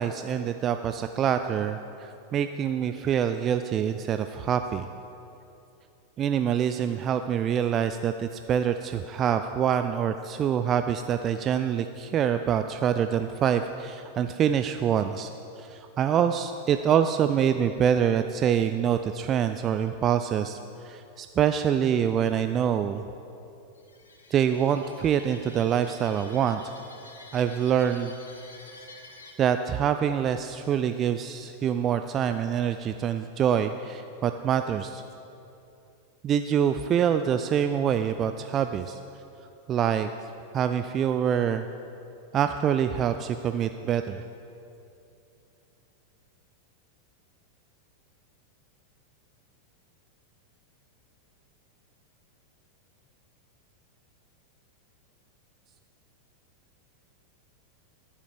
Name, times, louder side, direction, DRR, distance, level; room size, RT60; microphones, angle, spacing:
voice 1, 0.0-4.9 6.2-15.3 15.6-20.6 20.8-23.0 24.3-26.6 27.3-28.2 29.4-35.0 36.2-39.0 39.7-40.1 40.5-41.6 42.3-44.2, right 8 dB, 30° right, 8 dB, 0.3 m, -25 dB
sound 1, 23.7-29.3, left 2 dB, 70° left, 1.3 m, -49 dB
14.5 x 7.4 x 5.1 m, 2.8 s
figure-of-eight pair, 90°, 0 cm